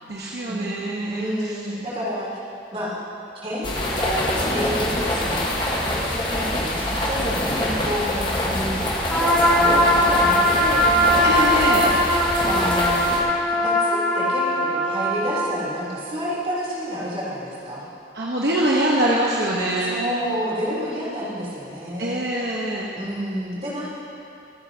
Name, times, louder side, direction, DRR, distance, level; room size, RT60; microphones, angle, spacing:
voice 1, 0.0-1.5 11.2-11.8 18.1-19.9 22.0-22.9, right 1 dB, 65° right, -4 dB, 1.2 m, -24 dB
voice 2, 1.1-2.3 2.7-2.9 3.4-8.8 9.0-11.3 11.6-11.9 12.5-13.0 13.5-17.9 19.8-22.2 22.9-23.9, equal, 35° right, -7 dB, 3.5 m, -29 dB
sound 1, 3.6-13.2, left 1 dB, 25° left, 1.4 m, -25 dB
Trumpet, 9.1-15.5, equal, 5° left, 2.4 m, -20 dB
25.5 x 9.6 x 2.9 m, 2.8 s
head